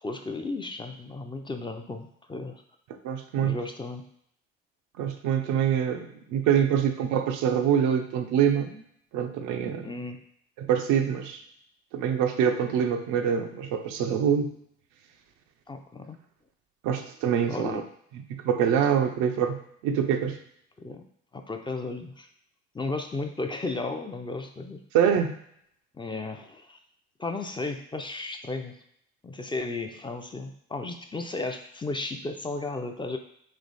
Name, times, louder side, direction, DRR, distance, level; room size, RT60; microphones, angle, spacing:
voice 1, 0.0-2.6 3.4-4.0 9.8-10.2 15.7-16.2 17.5-17.8 20.8-21.0 21.3-22.3 22.7-24.8 25.9-26.8 27.2-28.7 29.2-33.2, left 3 dB, 15° left, 5 dB, 0.5 m, -34 dB
voice 2, 3.0-3.6 5.0-8.8 9.1-9.9 10.6-11.4 11.9-14.5 16.8-17.8 18.3-20.4 24.9-25.3, right 8 dB, 80° right, 5 dB, 0.6 m, -25 dB
3.2 x 3.0 x 4.0 m, 0.70 s
supercardioid pair, 70°, 30 cm